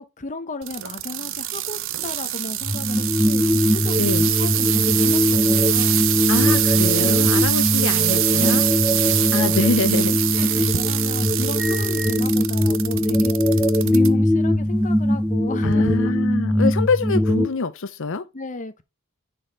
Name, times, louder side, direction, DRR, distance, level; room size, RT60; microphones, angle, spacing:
voice 1, 0.0-4.1 4.4-6.0 7.0-7.2 8.4-9.8 10.2-13.3 13.8-16.1 18.3-18.8, left 2 dB, 35° left, 0.8 m, -33 dB
sound 1, 0.6-14.1 14.6-15.1 15.7-15.8, right 14 dB, 65° right, 0.6 m, -24 dB
sound 2, 2.6-17.5, left 1 dB, 5° right, 0.9 m, -21 dB
voice 2, 4.0-4.3 6.3-8.6 9.3-10.7 15.6-18.3, left 4 dB, 65° left, 0.7 m, -25 dB
10.0 x 4.2 x 4.6 m
head